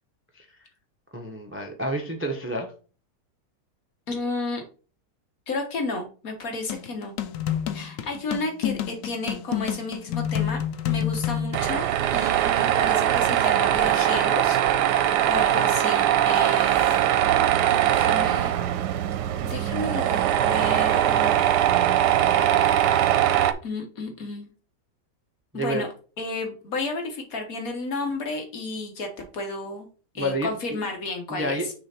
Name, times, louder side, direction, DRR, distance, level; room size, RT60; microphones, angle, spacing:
voice 1, 1.1-2.7 25.5-25.8 30.2-30.5 31.3-31.7, equal, 10° right, 0.6 m, -29 dB
voice 2, 4.1-4.6 5.5-7.1 7.7-11.8 12.1-14.6 15.0-17.0 17.8-18.5 19.5-21.7 23.6-24.5 25.5-25.9 26.2-29.9 30.1-31.7, left 2 dB, 55° left, 1.6 m, -32 dB
sound 1, 6.7-11.7, left 10 dB, 85° left, 1.3 m, -28 dB
Tools, 11.5-23.5, right 11 dB, 75° right, 1.2 m, -21 dB
6.4 x 3.4 x 4.3 m
omnidirectional pair, 1.9 m